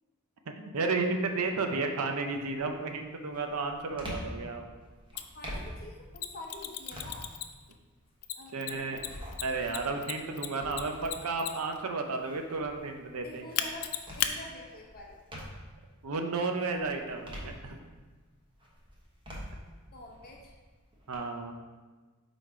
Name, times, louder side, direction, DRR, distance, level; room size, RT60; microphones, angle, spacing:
voice 1, 0.6-4.6 8.5-9.0 9.4-13.5 16.0-17.8 21.1-21.6, right 3 dB, 75° right, 5 dB, 0.6 m, -32 dB
sound 1, 1.4-1.8 2.3-15.9 16.3-18.1 18.6-21.2, equal, 20° right, 1.1 m, -46 dB
Mechanisms, 5.2-5.3 6.2-7.7 8.2-11.8 13.6-14.3, left 11 dB, 90° left, 0.4 m, -34 dB
voice 2, 5.3-7.3 8.3-9.0 13.2-13.9 14.2-15.2 19.9-20.5, left 2 dB, 45° left, -1 dB, 1.0 m, -46 dB
4.9 x 4.1 x 4.7 m, 1.3 s
head